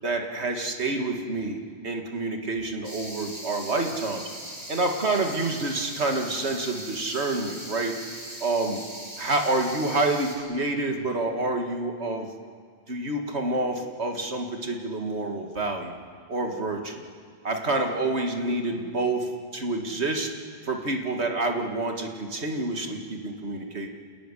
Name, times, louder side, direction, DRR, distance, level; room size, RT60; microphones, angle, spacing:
voice 1, 0.0-4.2 4.7-7.9 8.4-8.8 9.2-12.3 12.9-15.9 16.3-16.9 17.4-20.3 20.6-23.9, right 2 dB, 85° right, 3 dB, 2.4 m, -28 dB
sound 1, 2.8-10.4, right 1 dB, 35° right, 3.6 m, -40 dB
28.5 x 14.5 x 10.0 m, 2.1 s
omnidirectional pair, 1.1 m